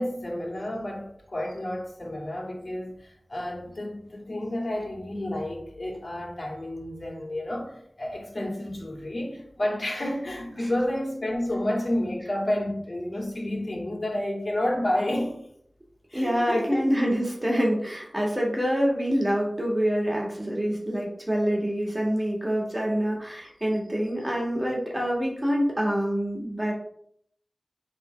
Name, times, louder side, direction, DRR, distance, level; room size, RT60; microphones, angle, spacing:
voice 1, 0.0-15.4 16.1-16.9 22.9-23.0, left 1 dB, 50° left, 2.1 m, -30 dB
voice 2, 16.1-26.7, equal, 25° right, 2.2 m, -26 dB
7.3 x 3.7 x 5.3 m
wide cardioid pair, 50°, 0 cm